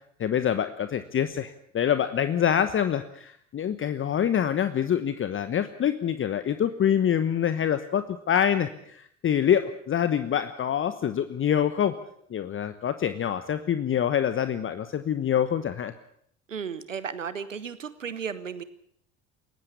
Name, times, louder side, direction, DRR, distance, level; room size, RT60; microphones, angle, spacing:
voice 1, 0.2-11.9 12.3-15.9, left 9 dB, 35° left, 11 dB, 1.2 m, -26 dB
voice 2, 16.5-18.6, right 6 dB, 90° right, 15 dB, 1.1 m, -34 dB
20.0 x 16.0 x 8.5 m, 0.67 s
figure-of-eight pair, 60°, 37 cm